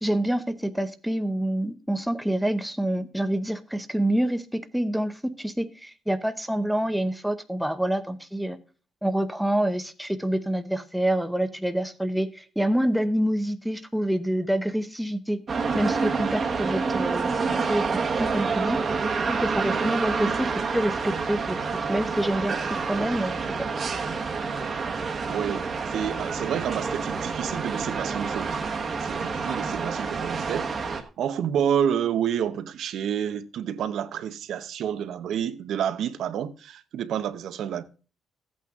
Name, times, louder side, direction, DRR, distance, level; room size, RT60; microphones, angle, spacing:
voice 1, 0.0-8.6 9.0-15.4 15.7-17.8 18.2-18.8 19.3-21.6 21.9-22.6 22.9-23.4, right 1 dB, ahead, 0.6 m, -27 dB
sound 1, 15.5-31.0, right 4 dB, 30° right, 1.1 m, -28 dB
voice 2, 25.3-28.6 29.0-37.8, right 9 dB, 60° right, 0.8 m, -29 dB
15.0 x 8.5 x 3.6 m
cardioid pair, 175°, 0 cm